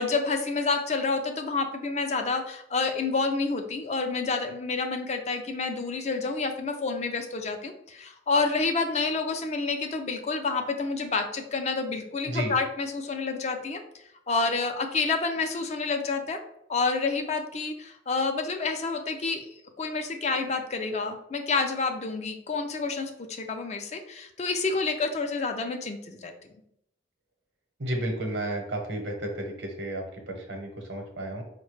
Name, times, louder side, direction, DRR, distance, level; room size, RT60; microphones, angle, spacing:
voice 1, 0.0-13.8 14.3-16.4 16.7-19.5 19.8-26.3, left 4 dB, 35° left, 5 dB, 0.4 m, -29 dB
voice 2, 27.8-31.4, right 1 dB, 90° right, 3 dB, 0.9 m, -32 dB
4.7 x 2.2 x 3.1 m, 0.75 s
head